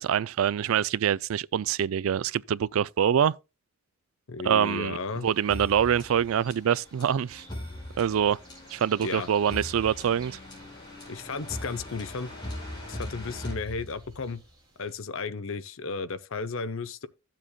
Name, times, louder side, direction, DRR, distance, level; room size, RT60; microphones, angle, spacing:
voice 1, 0.0-3.3 4.4-5.0 5.2-7.4 8.0-8.4 8.7-10.4, right 8 dB, 65° right, 0.3 m, -25 dB
voice 2, 4.3-5.3 9.0-9.3 11.1-12.3 12.9-14.4 14.8-17.1, left 4 dB, 60° left, 0.7 m, -34 dB
sound 1, 5.0-15.0, right 2 dB, 20° right, 3.6 m, -56 dB
sound 2, 5.5-14.3, left 1 dB, 20° left, 5.0 m, -40 dB
14.0 x 7.5 x 2.2 m
head